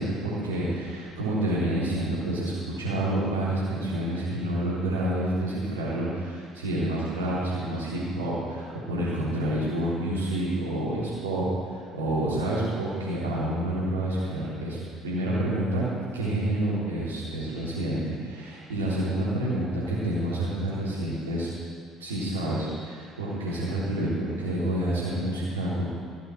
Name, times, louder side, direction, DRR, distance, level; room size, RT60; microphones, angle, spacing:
voice 1, 0.0-2.5 2.8-15.8 16.1-21.5 22.0-25.9, right 1 dB, 85° right, -8 dB, 3.7 m, -28 dB
15.5 x 6.9 x 6.3 m, 2.1 s
figure-of-eight pair, 55°, 0 cm